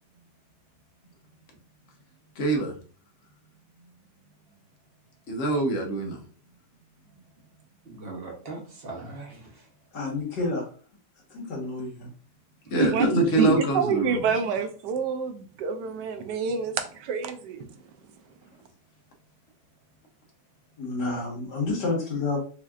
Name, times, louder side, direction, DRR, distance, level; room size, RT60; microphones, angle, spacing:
voice 1, 2.4-2.7 5.3-6.2 12.7-14.2, right 2 dB, 50° left, 1.0 m, -25 dB
voice 2, 7.9-9.5 12.8-13.5, right 3 dB, 45° right, 0.8 m, -27 dB
voice 3, 9.9-10.7 11.3-12.1 20.8-22.4, left 3 dB, 70° left, 1.9 m, -29 dB
voice 4, 13.7-17.7, right 6 dB, 75° right, 1.2 m, -28 dB
5.0 x 2.7 x 2.4 m
omnidirectional pair, 1.9 m